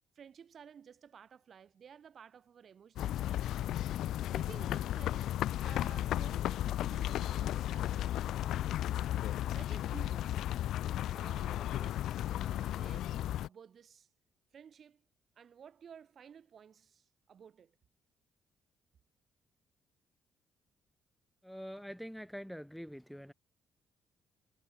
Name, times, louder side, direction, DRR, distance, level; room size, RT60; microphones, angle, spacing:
voice 1, 0.0-3.6 4.3-8.7 9.5-10.4 11.1-14.1 14.5-15.0 15.4-17.7, right 7 dB, 55° right, 2.6 m, -55 dB
sound 1, 3.0-13.5, left 12 dB, 80° left, 0.4 m, -34 dB
voice 2, 21.4-23.3, equal, ahead, 1.4 m, -45 dB
cardioid pair, 90°, 0 cm